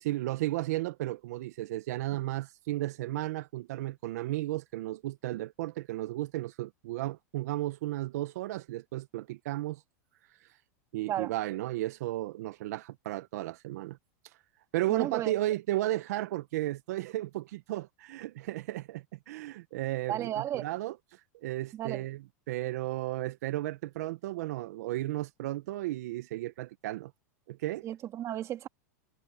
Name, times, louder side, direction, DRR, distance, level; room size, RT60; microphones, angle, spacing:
voice 1, 0.0-9.8 10.3-10.6 10.9-14.0 14.2-14.4 14.7-22.2 22.5-27.1 27.5-27.9, right 16 dB, 70° right, 0.9 m, -34 dB
voice 2, 14.9-15.3 20.1-20.7 21.7-22.0 27.8-28.7, right 12 dB, 35° right, 2.5 m, -34 dB
supercardioid pair, 130°, 9 cm